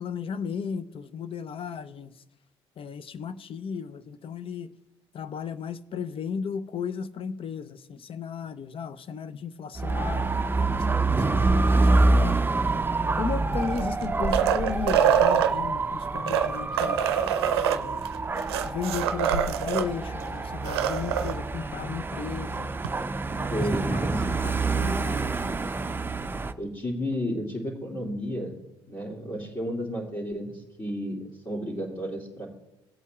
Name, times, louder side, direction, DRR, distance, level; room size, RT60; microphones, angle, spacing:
voice 1, 0.0-2.1 2.8-4.7 5.1-12.5 13.2-17.0 17.6-18.0 18.6-22.7 23.4-25.6, left 6 dB, 45° left, 0.6 m, -35 dB
Dog / Motorcycle, 9.8-26.5, right 3 dB, 15° right, 0.6 m, -27 dB
sound 1, 13.6-15.5 16.2-19.9 20.2-20.3 20.6-21.3 22.8-22.9, right 9 dB, 85° right, 0.5 m, -25 dB
voice 2, 23.5-24.4 26.6-28.6 28.9-32.5, equal, 30° left, 2.5 m, -32 dB
17.5 x 8.2 x 2.4 m
hypercardioid pair, 60°, 13 cm